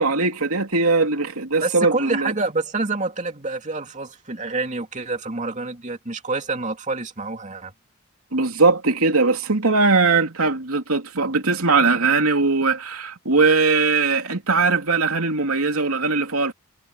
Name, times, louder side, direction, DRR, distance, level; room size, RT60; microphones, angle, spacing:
voice 1, 0.0-2.3 8.3-16.5, right 4 dB, 85° right, 2.9 m, -20 dB
voice 2, 1.6-7.7, right 3 dB, 35° right, 2.7 m, -27 dB
head